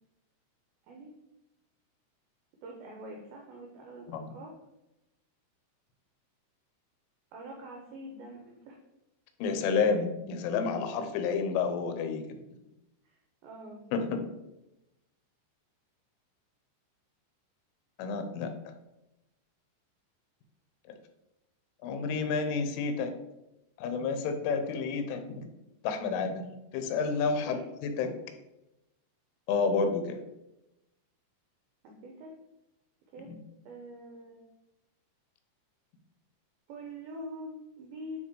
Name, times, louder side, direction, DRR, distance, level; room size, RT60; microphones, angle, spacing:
voice 1, 2.6-4.5 7.3-8.8 13.0-14.0 27.5-27.7 31.8-32.3 33.1-33.3 33.7-34.5 36.7-38.2, right 1 dB, 85° right, 1 dB, 2.1 m, -45 dB
voice 2, 9.4-12.2 13.9-14.2 18.0-18.5 21.8-23.1 23.8-25.5 25.8-26.4 26.7-28.1 29.5-30.2 33.3-33.4, left 5 dB, 90° left, 7 dB, 3.4 m, -30 dB
9.8 x 3.5 x 4.6 m, 0.92 s
omnidirectional pair, 5.5 m